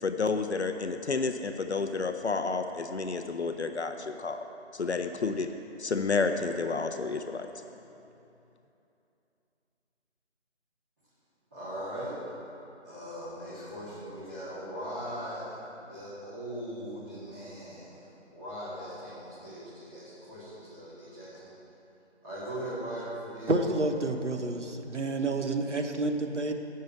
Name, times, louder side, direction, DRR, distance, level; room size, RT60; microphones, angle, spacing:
voice 1, 0.0-4.4 4.7-5.5 5.8-7.5, left 4 dB, 70° left, 7 dB, 0.6 m, -30 dB
voice 2, 11.5-12.1 12.8-21.5 22.2-23.6, equal, 15° right, -18 dB, 2.2 m, -40 dB
voice 3, 23.5-26.5, right 2 dB, 85° right, 5 dB, 1.1 m, -29 dB
8.6 x 6.5 x 7.1 m, 2.8 s
figure-of-eight pair, 165°, 35 cm